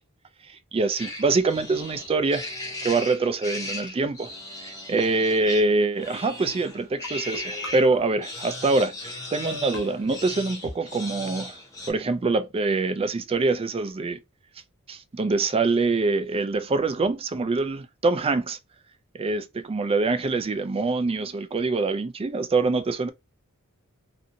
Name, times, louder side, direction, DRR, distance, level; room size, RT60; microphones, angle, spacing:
voice 1, 0.5-2.5 2.8-4.3 4.6-11.6 11.9-14.2 14.9-18.6 19.1-23.1, right 3 dB, 25° right, 0.3 m, -25 dB
sound 1, 1.0-7.9 8.2-11.9, left 2 dB, 15° left, 0.8 m, -37 dB
sound 2, 7.0-8.5 9.4-10.7, left 1 dB, 65° left, 0.9 m, -41 dB
2.6 x 2.6 x 2.6 m
head